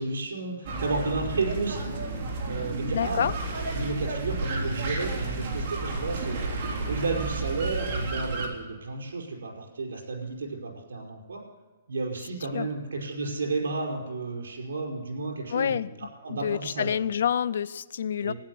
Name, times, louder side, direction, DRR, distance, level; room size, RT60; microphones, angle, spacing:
voice 1, 0.0-1.9 2.4-3.3 3.7-11.4 11.9-16.9 18.2-18.3, right 3 dB, 85° right, 0 dB, 5.0 m, -32 dB
sound 1, 0.7-8.5, right 3 dB, 40° right, 3.6 m, -32 dB
voice 2, 2.9-3.3 12.5-12.7 15.5-15.9 16.3-18.3, left 8 dB, 65° left, 16 dB, 0.5 m, -27 dB
16.0 x 10.0 x 7.7 m, 1.3 s
hypercardioid pair, 155°, 0 cm